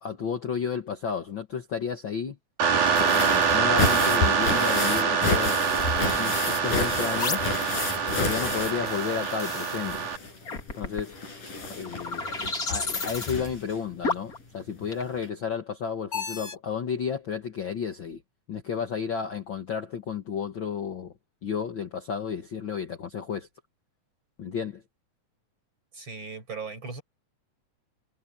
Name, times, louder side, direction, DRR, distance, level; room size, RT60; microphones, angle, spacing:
voice 1, 0.0-2.4 3.1-7.5 8.2-10.1 10.7-11.2 11.8-12.3 12.6-18.2 18.5-21.1 21.4-23.5 24.4-24.8, left 6 dB, 50° left, 1.8 m, -32 dB
sound 1, 2.6-10.2, right 6 dB, 75° right, 4.6 m, -25 dB
sound 2, 2.7-9.5 9.8-13.7 14.8-14.9 15.2-15.3, left 3 dB, 90° left, 9.6 m, -31 dB
sound 3, 4.7-4.9 5.7-6.2 7.2-7.6 8.4-9.8 10.5-11.1 11.7-13.4 14.0-14.4 14.9-15.3 16.1-16.5, left 3 dB, 30° left, 2.5 m, -32 dB
voice 2, 25.9-27.0, right 4 dB, 35° right, 6.8 m, -37 dB
omnidirectional pair, 3.5 m